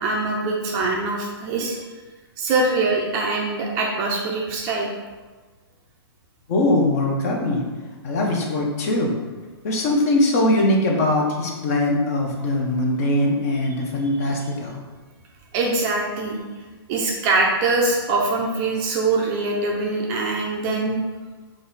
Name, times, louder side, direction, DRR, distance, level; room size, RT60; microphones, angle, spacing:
voice 1, 0.0-1.8 2.4-4.9 15.5-16.4 16.9-21.0, right 3 dB, 25° right, -1 dB, 0.4 m, -23 dB
voice 2, 6.5-7.6 8.0-9.2 9.6-14.8, left 1 dB, 35° left, 0 dB, 0.7 m, -21 dB
3.9 x 2.4 x 4.0 m, 1.3 s
hypercardioid pair, 155°, 14 cm